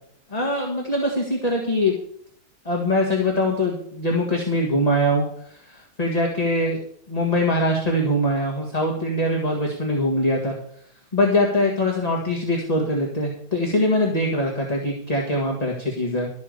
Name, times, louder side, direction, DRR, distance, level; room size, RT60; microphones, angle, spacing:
voice 1, 0.3-1.9 2.7-6.8 7.1-10.5 11.1-16.3, left 1 dB, 20° left, -1 dB, 2.0 m, -23 dB
13.0 x 7.4 x 6.8 m, 0.66 s
omnidirectional pair, 2.3 m